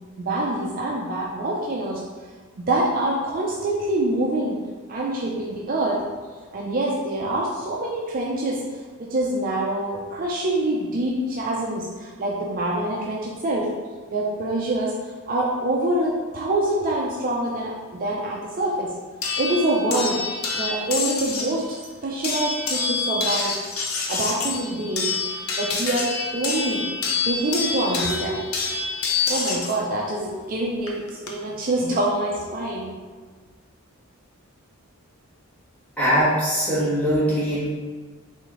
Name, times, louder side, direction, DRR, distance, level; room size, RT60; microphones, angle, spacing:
voice 1, 0.2-2.0 2.6-4.6 4.9-6.0 6.5-8.6 9.0-13.7 14.1-14.9 15.3-19.0 19.4-20.2 20.5-23.5 24.1-25.1 25.6-26.8 27.2-28.8 29.3-32.9, right 1 dB, 40° right, -3 dB, 0.4 m, -25 dB
sound 1, 19.2-21.6 22.2-29.8 30.9-31.3, left 4 dB, 65° left, 0.6 m, -27 dB
voice 2, 36.0-37.7, equal, 5° left, -10 dB, 1.4 m, -21 dB
4.3 x 3.4 x 3.0 m, 1.4 s
head